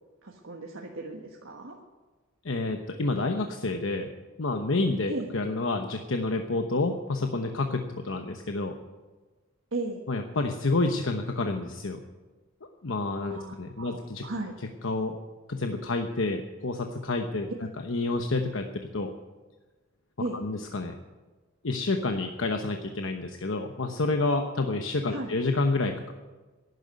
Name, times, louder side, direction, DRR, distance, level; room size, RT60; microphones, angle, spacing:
voice 1, 0.2-1.8 5.1-5.3 9.7-10.0 13.3-14.6 17.5-17.7 20.2-20.4 25.1-25.3, right 2 dB, 75° right, 0 dB, 1.5 m, -36 dB
voice 2, 2.4-4.1 4.4-8.7 10.1-12.0 12.8-14.2 14.8-15.2 15.5-17.5 17.8-19.1 20.4-20.9 21.6-26.1, left 2 dB, 75° left, 5 dB, 1.0 m, -29 dB
12.0 x 11.0 x 9.4 m, 1.3 s
head